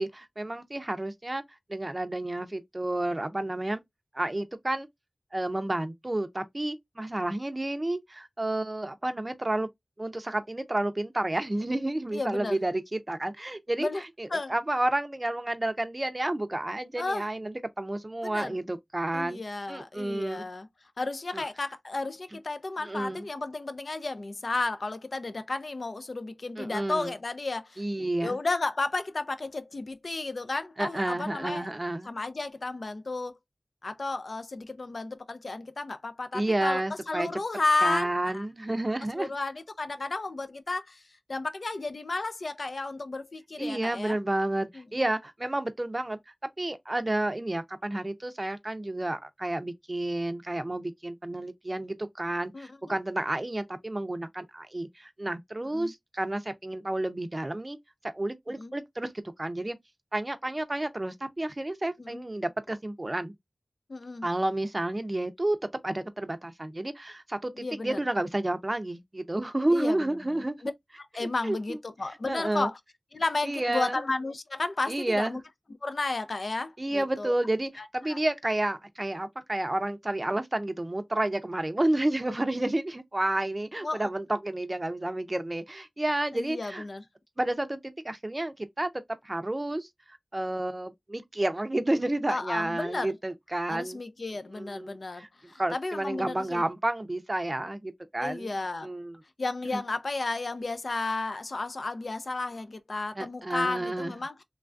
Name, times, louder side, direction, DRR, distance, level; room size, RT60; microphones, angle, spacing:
voice 1, 0.0-1.4 1.7-3.8 4.1-4.9 5.3-9.7 10.0-19.4 19.7-20.5 21.3-21.4 22.8-23.2 26.6-27.1 27.8-28.4 30.8-32.1 36.3-37.3 37.8-39.3 43.6-46.2 46.6-57.8 58.1-59.1 59.4-59.8 60.1-63.3 64.2-65.6 65.8-70.6 71.2-71.8 72.3-72.7 73.4-74.0 74.9-75.4 76.8-86.8 87.4-88.9 89.2-89.9 90.3-94.0 94.5-95.3 95.6-98.5 98.8-99.2 99.7-99.8 103.1-104.2, right 1 dB, 30° right, 0.5 m, -30 dB
voice 2, 12.1-12.6 13.8-14.0 14.3-14.5 17.0-17.3 18.2-18.6 19.1-20.7 21.0-27.8 28.2-31.7 32.0-33.3 33.8-36.8 37.1-38.5 39.1-41.0 41.3-44.2 44.7-44.9 52.5-52.9 55.7-55.9 58.5-58.7 62.0-62.2 63.9-64.3 67.5-68.0 69.7-70.7 71.1-72.8 73.1-75.4 75.8-77.3 77.8-78.2 83.8-84.1 86.3-87.0 92.3-93.1 93.7-96.7 98.2-98.9 99.4-104.4, left 3 dB, 70° left, 0.4 m, -33 dB
3.2 x 2.2 x 2.5 m
wide cardioid pair, 65°, 0 cm